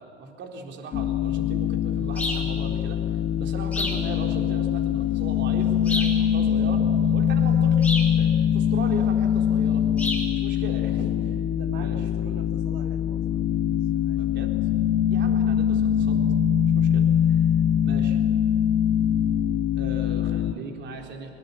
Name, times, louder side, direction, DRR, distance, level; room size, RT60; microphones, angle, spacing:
voice 1, 0.0-3.0 3.4-6.8 7.1-7.9 8.2-9.8 10.4-11.4 11.8-12.1 14.1-14.6 15.1-16.2 16.7-17.5 17.8-18.2 19.8-21.3, right 4 dB, 35° right, 2 dB, 4.0 m, -39 dB
sound 1, 0.9-20.5, left 9 dB, 30° left, 1.4 m, -23 dB
sound 2, 2.1-2.5 3.7-4.1 5.8-6.2 7.8-8.1 10.0-10.3, left 1 dB, 5° left, 5.2 m, -29 dB
voice 2, 11.5-14.2 15.4-15.5, right 5 dB, 50° right, 3 dB, 3.4 m, -44 dB
24.0 x 20.5 x 8.5 m, 2.3 s
hypercardioid pair, 95°, 33 cm